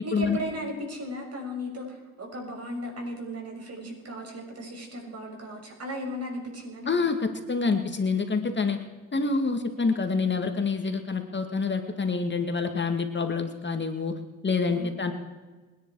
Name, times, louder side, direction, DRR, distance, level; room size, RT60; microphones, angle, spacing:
voice 1, 0.0-6.9 14.7-14.9, equal, 50° right, 1 dB, 6.7 m, -36 dB
voice 2, 6.9-8.8 9.1-14.1 14.4-15.1, left 4 dB, 35° left, 6 dB, 2.2 m, -27 dB
27.5 x 10.5 x 4.9 m, 1.3 s
supercardioid pair, 65°, 32 cm